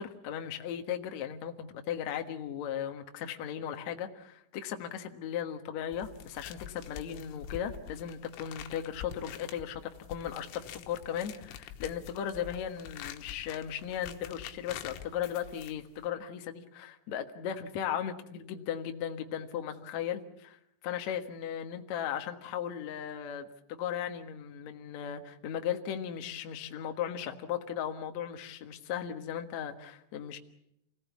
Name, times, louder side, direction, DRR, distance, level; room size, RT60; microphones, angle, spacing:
voice 1, 0.0-20.6 20.8-30.4, left 9 dB, 70° left, 5 dB, 1.7 m, -37 dB
sound 1, 5.9-16.1, left 9 dB, 90° left, 3.7 m, -46 dB
29.0 x 17.5 x 8.4 m, 0.78 s
omnidirectional pair, 5.5 m